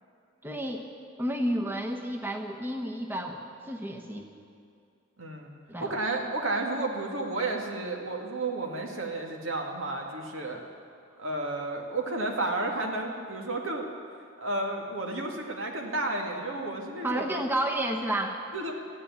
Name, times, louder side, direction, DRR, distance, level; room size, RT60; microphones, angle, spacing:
voice 1, 0.4-0.9 1.2-4.2 5.7-6.0 17.0-18.4, right 1 dB, 10° right, 2 dB, 0.9 m, -31 dB
voice 2, 5.2-5.5 5.8-10.6 11.2-13.9 14.4-17.3 18.5-18.7, right 2 dB, 85° right, 1 dB, 2.1 m, -32 dB
14.0 x 10.0 x 9.6 m, 2.4 s
head